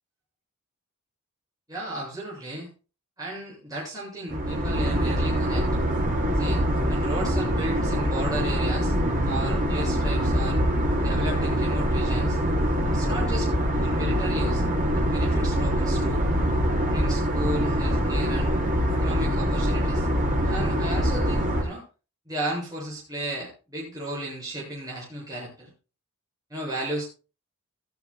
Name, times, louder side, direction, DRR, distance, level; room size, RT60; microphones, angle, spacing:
voice 1, 1.7-2.7 3.2-5.7 6.3-6.6 6.9-8.9 9.2-10.6 11.0-12.4 12.9-13.5 13.8-14.6 14.9-16.3 16.8-18.5 19.0-20.1 20.4-21.8 22.3-25.7 26.5-27.1, right 1 dB, 15° right, -5 dB, 7.7 m, -34 dB
sound 1, 4.3-21.6, equal, 40° right, 4.6 m, -24 dB
16.5 x 14.5 x 2.4 m, 0.33 s
head